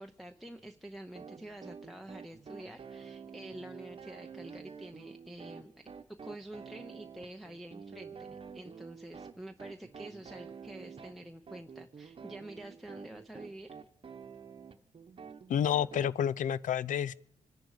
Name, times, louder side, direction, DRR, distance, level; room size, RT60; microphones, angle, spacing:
voice 1, 0.0-5.7 6.2-13.7, right 1 dB, ahead, 0.7 m, -47 dB
sound 1, 1.1-16.1, right 6 dB, 40° right, 1.0 m, -48 dB
voice 2, 15.5-17.1, left 9 dB, 80° left, 0.5 m, -29 dB
26.0 x 10.5 x 4.8 m
wide cardioid pair, 120°, 13 cm